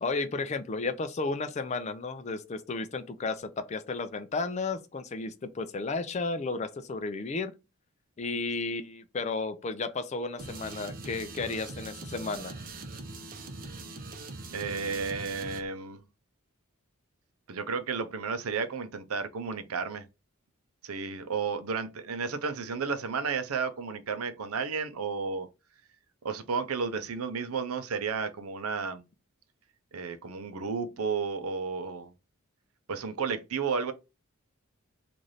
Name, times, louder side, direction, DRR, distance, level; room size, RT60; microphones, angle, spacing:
voice 1, 0.0-7.5 8.2-12.5, left 3 dB, 30° left, 0.4 m, -33 dB
sound 1, 10.4-15.6, right 3 dB, 40° right, 0.5 m, -42 dB
voice 2, 14.5-16.0 17.5-20.0 20.8-25.5 26.2-29.0 29.9-32.1 32.9-33.9, right 5 dB, 90° right, 0.6 m, -32 dB
3.1 x 2.6 x 3.9 m
head